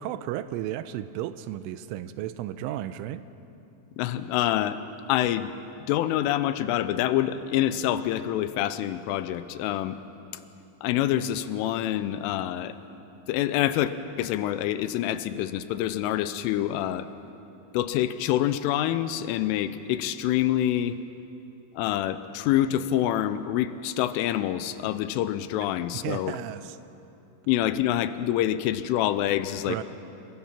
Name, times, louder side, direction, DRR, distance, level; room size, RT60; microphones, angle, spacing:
voice 1, 0.0-3.2 25.9-26.8 29.7-29.8, right 12 dB, 80° right, 12 dB, 3.0 m, -33 dB
voice 2, 4.0-4.8 5.1-5.5 5.8-10.0 10.8-12.7 13.3-17.1 17.7-21.0 21.8-26.4 27.5-29.8, left 12 dB, 85° left, 12 dB, 3.3 m, -26 dB
27.5 x 22.5 x 5.9 m, 2.9 s
omnidirectional pair, 5.7 m